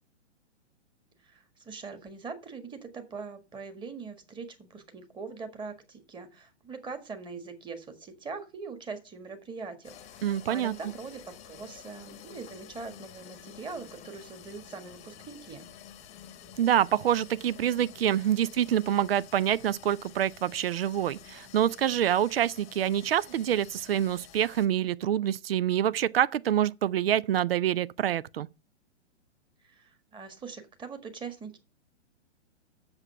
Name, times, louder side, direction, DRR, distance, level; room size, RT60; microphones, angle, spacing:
voice 1, 1.2-10.2 10.5-15.6 29.6-31.6, right 4 dB, 15° right, 1.6 m, -42 dB
sound 1, 9.8-24.7, left 9 dB, 20° left, 1.1 m, -50 dB
voice 2, 10.2-10.7 16.6-28.5, right 10 dB, 55° right, 0.6 m, -26 dB
8.1 x 7.0 x 5.3 m
figure-of-eight pair, 115°, 36 cm